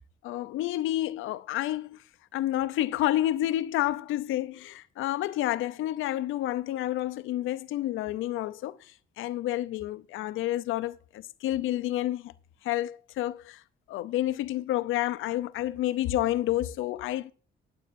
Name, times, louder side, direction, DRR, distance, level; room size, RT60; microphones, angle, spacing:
voice 1, 0.2-2.0 2.3-12.3 12.6-13.6 13.9-17.3, left 14 dB, 90° left, 0.6 m, -29 dB
22.5 x 7.9 x 2.6 m
cardioid pair, 90°, 20 cm